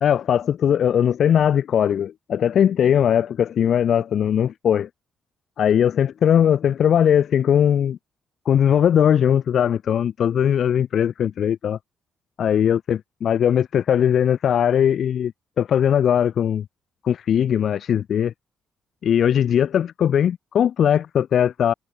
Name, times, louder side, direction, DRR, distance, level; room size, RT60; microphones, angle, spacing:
voice 1, 0.0-4.9 5.6-8.0 8.5-11.8 12.4-16.7 17.0-18.3 19.0-21.7, left 9 dB, 60° left, 0.4 m, -19 dB
cardioid pair, 90°, 0 cm